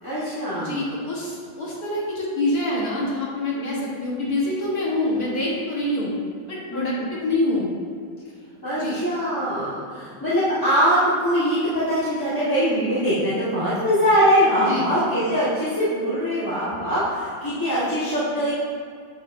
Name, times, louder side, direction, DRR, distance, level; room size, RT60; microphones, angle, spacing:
voice 1, 0.0-0.8 3.5-3.9 6.7-7.1 8.6-18.5, equal, 15° left, -11 dB, 1.3 m, -22 dB
voice 2, 0.6-6.1 6.5-7.7 8.8-9.0 14.7-14.9, left 2 dB, 55° left, -5 dB, 1.9 m, -26 dB
8.8 x 8.2 x 2.6 m, 2.2 s
omnidirectional pair, 1.9 m